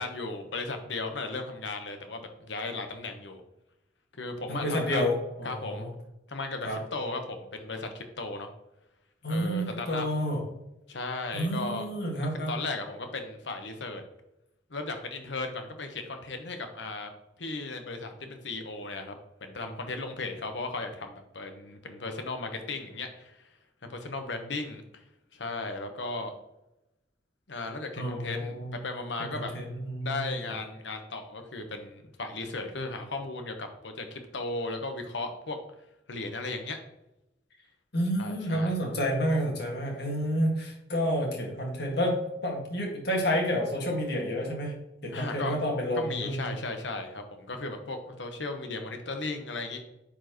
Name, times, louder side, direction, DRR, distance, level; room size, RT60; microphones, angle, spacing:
voice 1, 0.0-3.4 4.1-5.0 5.4-5.8 6.3-8.5 9.3-10.1 10.9-11.9 12.5-14.0 14.7-17.1 17.4-19.1 19.4-23.4 23.8-25.0 25.3-26.3 27.5-29.5 30.0-35.6 36.1-36.8 38.2-38.8 45.1-45.5 45.9-49.8, left 3 dB, 80° left, 6 dB, 1.1 m, -36 dB
voice 2, 4.5-5.9 6.6-6.8 9.2-10.4 11.3-12.5 28.0-28.8 29.4-30.3 37.9-46.5, equal, 65° left, 0 dB, 1.9 m, -29 dB
9.2 x 4.5 x 3.0 m, 0.90 s
head